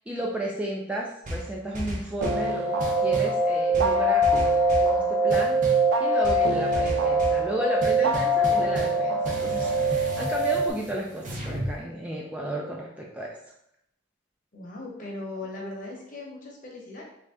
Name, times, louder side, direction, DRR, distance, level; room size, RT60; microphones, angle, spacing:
voice 1, 0.1-4.3 4.8-5.6 6.0-13.4, right 1 dB, 5° right, -2 dB, 0.3 m, -33 dB
sound 1, 1.3-2.5 2.8-3.4 3.7-4.9 5.3-5.9 6.2-7.4 7.8-9.0 9.2-11.8, equal, 40° right, 0.6 m, -34 dB
sound 2, 2.2-10.7, right 1 dB, 90° right, 0.4 m, -23 dB
voice 2, 14.5-17.0, left 2 dB, 45° left, -2 dB, 0.9 m, -38 dB
3.2 x 2.6 x 3.4 m, 0.77 s
head